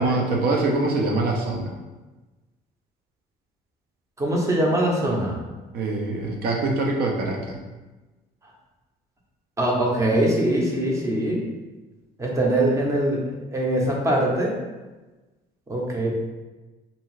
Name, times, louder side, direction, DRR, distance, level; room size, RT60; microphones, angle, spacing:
voice 1, 0.0-1.7 5.7-7.6, right 2 dB, 65° right, 1 dB, 0.6 m, -24 dB
voice 2, 4.2-5.4 9.6-11.5 12.2-13.2 13.5-14.5 15.7-16.1, right 1 dB, 20° right, -2 dB, 0.7 m, -22 dB
2.6 x 2.3 x 3.1 m, 1.2 s
cardioid pair, 110°, 17 cm